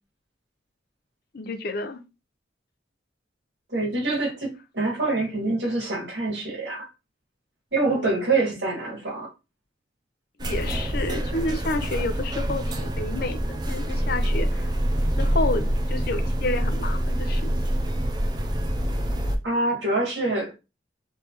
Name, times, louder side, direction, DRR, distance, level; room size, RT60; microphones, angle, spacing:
voice 1, 1.3-2.0 7.8-8.1 10.4-14.7 15.2-17.5, left 2 dB, 55° left, 0.6 m, -30 dB
voice 2, 3.7-6.9 7.7-9.3 19.4-20.6, right 2 dB, 65° right, 1.8 m, -25 dB
sound 1, 10.4-19.4, equal, 25° right, 0.4 m, -26 dB
3.3 x 3.2 x 2.9 m
head